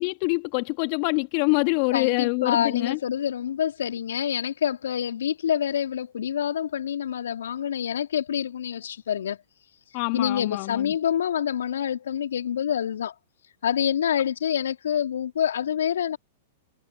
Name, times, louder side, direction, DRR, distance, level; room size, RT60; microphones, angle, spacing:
voice 1, 0.0-3.0 9.9-10.9, left 36 dB, 45° left, 1.6 m, -25 dB
voice 2, 1.9-9.4 10.1-13.1 13.6-16.2, left 9 dB, 70° left, 3.1 m, -27 dB
figure-of-eight pair, 100°, 0 cm